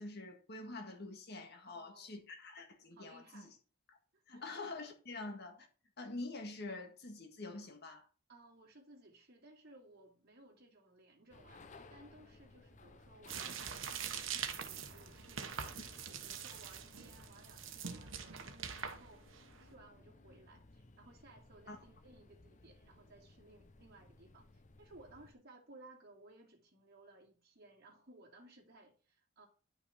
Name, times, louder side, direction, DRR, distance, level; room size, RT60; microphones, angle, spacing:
voice 1, 0.0-3.5 3.9-4.0 4.3-5.7 6.0-8.1 15.7-15.9 21.7-21.8, left 2 dB, 55° left, 1.9 m, -46 dB
voice 2, 1.6-2.2 2.9-3.6 4.1-4.4 8.3-15.8 16.2-19.3 19.5-29.5, right 2 dB, 50° right, 2.6 m, -60 dB
sound 1, 11.3-25.3, left 2 dB, 40° left, 0.8 m, -60 dB
sound 2, 13.3-19.7, right 7 dB, 75° right, 1.1 m, -44 dB
10.5 x 5.9 x 4.3 m
head